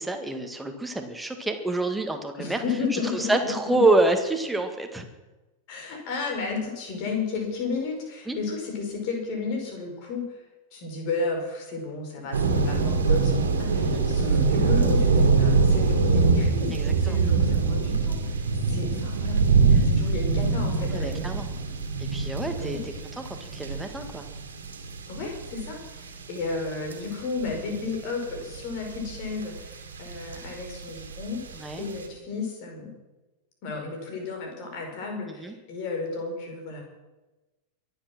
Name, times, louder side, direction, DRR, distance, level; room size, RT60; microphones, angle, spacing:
voice 1, 0.0-2.6 2.9-5.1 8.3-8.4 13.9-14.1 16.7-17.2 20.9-21.5 22.0-24.3 31.5-31.9 35.3-35.5, right 2 dB, 5° right, 5 dB, 2.0 m, -27 dB
voice 2, 2.4-3.8 5.7-10.4 10.7-19.4 19.8-21.4 22.6-22.8 25.1-31.4 31.8-32.9 33.6-36.8, left 4 dB, 45° left, 2 dB, 5.3 m, -33 dB
sound 1, 12.3-26.1 26.4-27.1 27.4-31.9, right 4 dB, 70° right, 2.5 m, -23 dB
23.0 x 8.4 x 6.2 m, 1.1 s
figure-of-eight pair, 90°, 0 cm